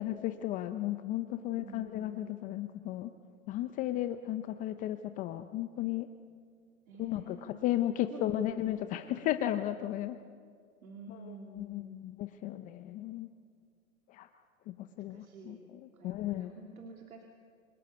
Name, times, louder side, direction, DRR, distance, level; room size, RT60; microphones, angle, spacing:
voice 1, 0.0-3.1 3.5-6.1 7.0-10.2 11.1-13.3 14.1-14.3 14.7-16.5, left 13 dB, 20° left, 10 dB, 0.5 m, -35 dB
voice 2, 1.4-2.4 6.8-7.5 8.0-8.6 10.8-12.0 15.1-15.7 15.9-17.2, right 3 dB, 85° right, 2 dB, 3.1 m, -49 dB
27.5 x 19.0 x 8.3 m, 2.1 s
hypercardioid pair, 135°, 42 cm